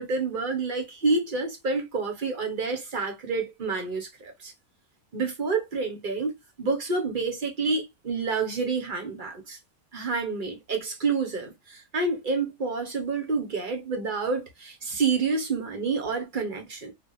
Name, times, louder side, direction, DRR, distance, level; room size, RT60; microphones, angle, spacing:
voice 1, 0.0-4.5 5.1-6.3 6.6-9.6 9.9-16.9, right 4 dB, 40° right, 1.1 m, -28 dB
3.4 x 2.4 x 3.9 m
omnidirectional pair, 1.5 m